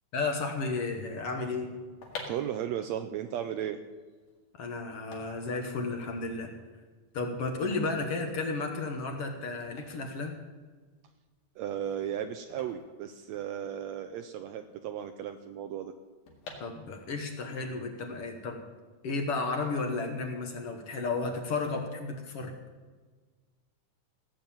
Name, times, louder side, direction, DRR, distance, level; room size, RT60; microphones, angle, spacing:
voice 1, 0.1-1.7 4.6-6.5 7.1-10.4 16.6-18.6 19.0-22.5, left 3 dB, 55° left, 4 dB, 1.9 m, -33 dB
sound 1, 1.8-13.9 14.2-14.3 14.4-17.3 17.7-18.7 19.3-20.3 20.6-20.9, left 4 dB, 80° left, 3.5 m, -49 dB
voice 2, 2.3-3.8 11.6-15.9, right 10 dB, 80° right, 9 dB, 1.6 m, -35 dB
16.5 x 7.2 x 8.8 m, 1.4 s
omnidirectional pair, 3.6 m